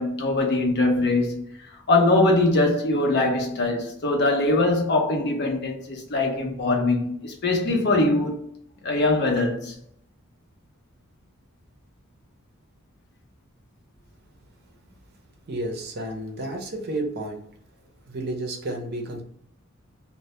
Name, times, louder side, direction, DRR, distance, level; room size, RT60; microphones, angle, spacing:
voice 1, 0.0-1.4 1.9-8.3 8.8-9.7, left 2 dB, 50° left, 0.6 m, -22 dB
voice 2, 15.5-17.4 18.1-19.2, right 1 dB, 50° right, 0.5 m, -31 dB
2.1 x 2.1 x 2.8 m
head